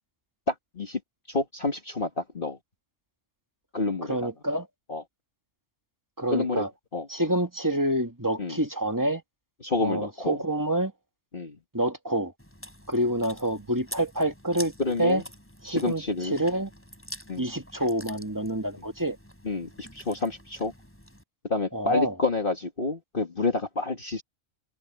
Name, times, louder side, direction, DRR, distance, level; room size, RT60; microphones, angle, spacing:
voice 1, 0.5-1.0 1.3-2.6 3.7-4.3 4.9-5.0 6.3-6.6 6.9-7.1 8.4-8.6 9.6-10.4 11.3-11.6 14.8-15.2 15.6-16.4 17.3-17.5 19.4-20.7 21.5-24.2, left 3 dB, 40° left, 2.2 m, -29 dB
voice 2, 4.1-4.7 6.2-6.7 7.1-9.2 9.8-10.9 11.7-12.3 12.9-14.7 15.0-15.2 15.6-16.7 17.4-19.2 21.7-22.1, right 1 dB, 15° right, 2.0 m, -27 dB
Chewing mastication, 12.4-21.2, equal, 10° left, 6.0 m, -46 dB
omnidirectional pair, 1.4 m